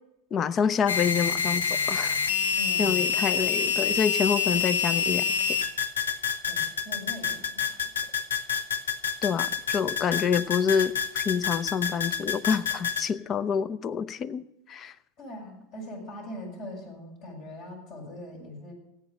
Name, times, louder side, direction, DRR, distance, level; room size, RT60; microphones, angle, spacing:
voice 1, 0.3-2.2 2.8-5.6 9.2-14.9, left 7 dB, 35° left, 14 dB, 0.7 m, -27 dB
sound 1, 0.9-13.0, left 6 dB, 85° left, 1.1 m, -27 dB
voice 2, 2.5-3.1 6.5-8.1 15.2-18.7, left 1 dB, 55° left, 1 dB, 6.8 m, -41 dB
16.5 x 8.8 x 6.5 m, 0.84 s
hypercardioid pair, 90°, 0 cm